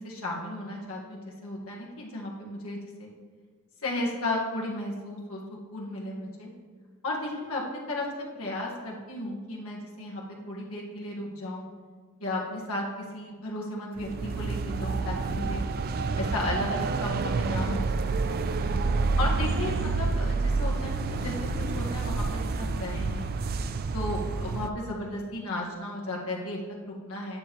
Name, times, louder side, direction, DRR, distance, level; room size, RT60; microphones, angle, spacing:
voice 1, 0.0-3.1 3.8-6.5 7.0-7.6 7.9-8.0 8.3-11.7 12.2-15.6 16.2-18.5 19.2-21.5 21.7-23.3 23.9-27.4, left 1 dB, 75° left, -2 dB, 1.6 m, -34 dB
sound 1, 14.0-24.7, right 3 dB, 45° right, 0.3 m, -28 dB
9.5 x 7.0 x 3.0 m, 1.5 s
head